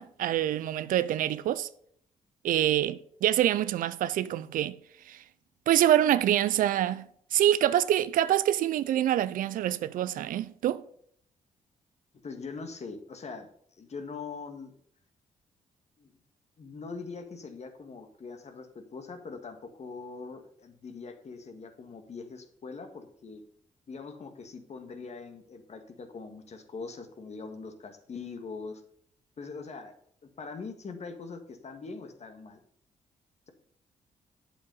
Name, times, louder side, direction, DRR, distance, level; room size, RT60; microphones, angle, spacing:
voice 1, 0.0-1.7 2.4-4.8 5.1-5.2 5.7-10.8, right 12 dB, 75° right, 0.5 m, -26 dB
voice 2, 12.2-14.7 16.0-16.2 16.6-23.4 23.9-28.8 29.4-29.9 30.4-32.6, left 4 dB, 50° left, 1.7 m, -42 dB
8.5 x 7.1 x 5.4 m
supercardioid pair, 55°, 14 cm